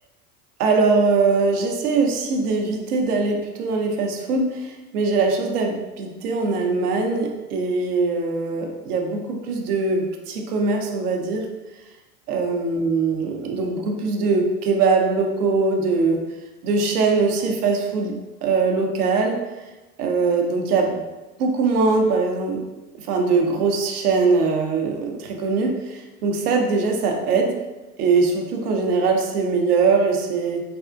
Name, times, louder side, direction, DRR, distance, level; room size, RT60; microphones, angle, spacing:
voice 1, 0.6-11.5 12.3-16.2 16.6-19.4 20.0-21.0 21.4-22.6 22.9-27.6 28.0-30.6, right 4 dB, 85° right, 2 dB, 0.7 m, -21 dB
3.5 x 2.4 x 2.5 m, 1.1 s
hypercardioid pair, 90°, 44 cm